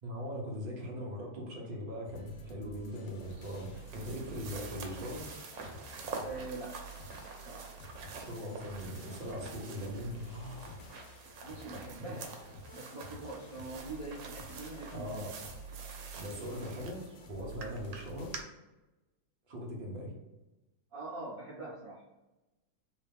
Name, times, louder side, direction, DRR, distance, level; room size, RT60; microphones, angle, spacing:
voice 1, 0.0-5.3 8.1-10.7 11.9-12.2 14.9-15.3 16.1-18.3 19.5-20.1, equal, 40° right, -3 dB, 0.9 m, -40 dB
sound 1, 2.0-18.4, equal, 70° left, 1.1 m, -50 dB
sound 2, 3.2-18.4, right 4 dB, 85° right, 1.3 m, -47 dB
voice 2, 6.2-6.8 7.4-7.7 11.4-12.3 12.7-15.4 20.9-22.0, right 3 dB, 60° right, -7 dB, 1.1 m, -43 dB
3.1 x 2.8 x 3.3 m, 1.0 s
omnidirectional pair, 1.9 m